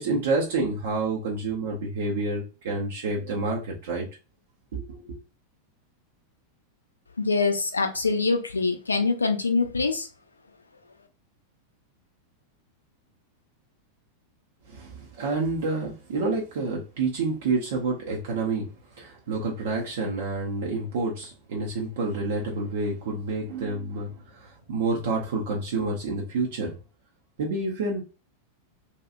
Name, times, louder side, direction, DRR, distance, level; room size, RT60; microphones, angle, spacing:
voice 1, 0.0-4.1 4.7-5.2 14.7-18.7 19.0-26.7 27.4-28.0, right 3 dB, 55° right, -2 dB, 0.6 m, -28 dB
voice 2, 7.2-10.1, left 4 dB, 75° left, 5 dB, 0.4 m, -24 dB
2.7 x 2.3 x 2.5 m, 0.32 s
figure-of-eight pair, 90°, 0 cm